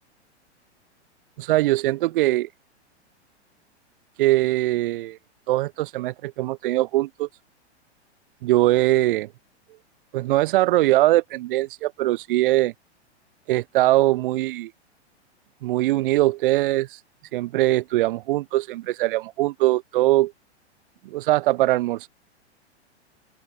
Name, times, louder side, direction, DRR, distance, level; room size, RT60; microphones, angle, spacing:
voice 1, 1.4-2.5 4.2-5.2 5.5-7.3 8.4-9.3 10.1-12.7 13.5-14.7 15.6-17.0 17.3-20.3 21.0-22.1, right 17 dB, 50° right, 0.9 m, -21 dB
open air
figure-of-eight pair, 105°, 35 cm